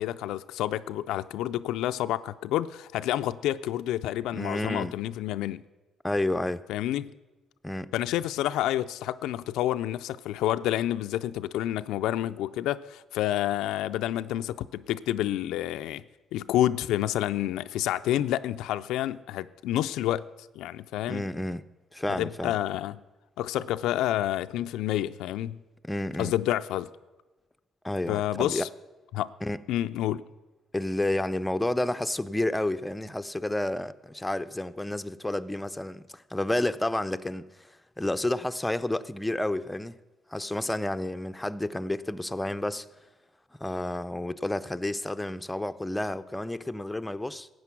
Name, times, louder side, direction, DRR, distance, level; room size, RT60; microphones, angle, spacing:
voice 1, 0.0-5.6 6.7-7.1 7.9-16.0 16.3-20.3 20.6-21.2 22.2-23.0 23.4-25.6 26.2-26.9 28.1-28.7 29.1-29.3 29.7-30.2, left 13 dB, 85° left, 0.3 m, -29 dB
voice 2, 4.3-4.9 6.0-6.6 7.6-7.9 21.1-21.6 21.9-22.6 25.8-26.3 27.8-28.7 29.4-29.6 30.7-40.0 40.3-42.9 43.6-47.5, left 1 dB, 10° left, 0.5 m, -30 dB
13.0 x 8.3 x 6.0 m
cardioid pair, 85°, 0 cm